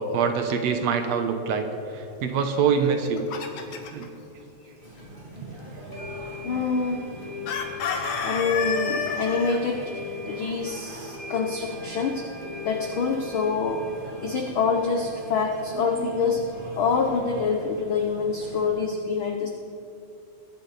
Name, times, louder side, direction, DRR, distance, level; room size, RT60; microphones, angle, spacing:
voice 1, 0.0-3.3 3.7-4.1 15.8-16.4, right 6 dB, 70° right, 6 dB, 2.0 m, -25 dB
Chicken rooster, 2.8-4.1 7.5-9.6, left 6 dB, 65° left, 2.1 m, -29 dB
sound 1, 4.8-18.7, equal, 20° right, 1.8 m, -42 dB
sound 2, 5.0-5.1 5.9-17.5, left 4 dB, 30° left, 2.5 m, -41 dB
voice 2, 6.4-7.0 7.9-12.3 12.6-13.9 14.2-19.5, left 5 dB, 85° left, 3 dB, 1.1 m, -26 dB
21.5 x 10.5 x 4.1 m, 2.8 s
omnidirectional pair, 3.5 m